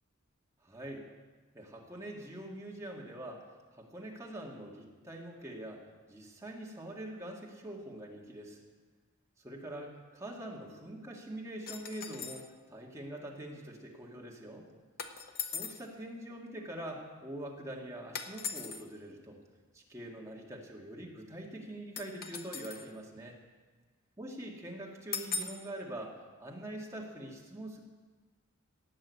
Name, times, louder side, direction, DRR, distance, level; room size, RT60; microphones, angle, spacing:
voice 1, 0.6-1.1 1.5-3.5 3.7-8.6 9.4-14.7 15.5-19.4 19.7-23.4 24.2-26.1 26.4-27.8, right 1 dB, 15° right, -2 dB, 2.0 m, -44 dB
sound 1, 11.7-12.5 15.0-15.9 18.1-18.8 22.0-22.9 25.1-25.7, left 5 dB, 50° left, 0.9 m, -39 dB
17.5 x 6.4 x 8.3 m, 1.3 s
head